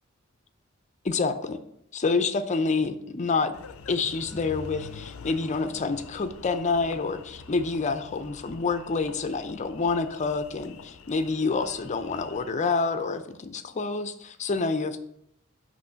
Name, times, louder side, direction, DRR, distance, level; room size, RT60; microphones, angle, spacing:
voice 1, 1.0-1.6 1.9-3.5 3.9-15.0, left 4 dB, 35° left, 10 dB, 0.5 m, -28 dB
Engine, 3.5-12.5, left 5 dB, 85° left, 0.5 m, -45 dB
8.0 x 3.1 x 5.6 m, 0.77 s
head